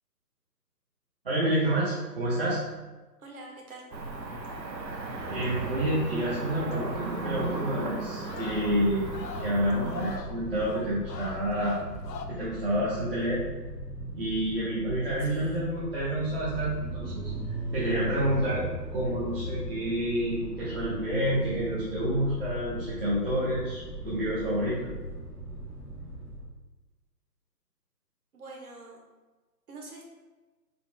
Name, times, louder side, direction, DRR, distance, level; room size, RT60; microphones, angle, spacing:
voice 1, 1.2-2.6 5.3-9.1 9.4-11.8 12.3-13.4 14.1-17.2 17.7-18.6 18.9-24.8, right 1 dB, 35° right, -9 dB, 1.0 m, -29 dB
voice 2, 3.2-3.8 15.2-15.6 28.3-29.0 29.7-30.0, right 3 dB, 60° right, 0 dB, 1.4 m, -45 dB
Cricket / Motor vehicle (road), 3.9-10.2, right 3 dB, 90° right, 1.0 m, -36 dB
sound 1, 6.7-12.3, left 5 dB, 80° left, 0.7 m, -43 dB
sound 2, 8.1-26.5, right 1 dB, 10° right, 0.9 m, -38 dB
5.1 x 4.7 x 2.2 m, 1.2 s
hypercardioid pair, 165°, 49 cm